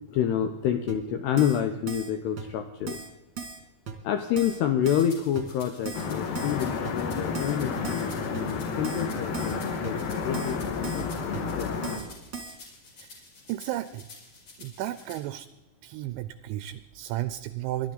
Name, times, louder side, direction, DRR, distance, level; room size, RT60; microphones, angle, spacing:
voice 1, 0.1-3.0 4.0-10.0 10.2-11.8, left 9 dB, 80° left, 7 dB, 2.4 m, -28 dB
Keyboard (musical), 0.9-1.0 1.4-1.6 1.9-2.1 2.4-2.5 2.9-3.1 3.4-3.6 3.9-4.0 4.4-4.6 4.9-5.1 5.4-5.5 5.9-6.1 6.4-6.6 6.8-6.9 7.3-7.6 7.8-8.1 8.3-8.4 8.8-9.1 9.3-9.6 9.8-9.9 10.3-10.6 10.8-11.1 11.3-11.4 11.8-12.1 12.3-12.6, right 6 dB, 40° right, 1.8 m, -37 dB
sound 1, 4.8-15.2, left 3 dB, 40° left, 5.7 m, -50 dB
sound 2, 5.9-12.0, left 5 dB, 60° left, 2.9 m, -31 dB
voice 2, 13.5-14.1 14.6-15.5 15.8-17.9, right 14 dB, 80° right, 13 dB, 2.8 m, -33 dB
23.0 x 11.5 x 4.0 m, 1.1 s
omnidirectional pair, 5.7 m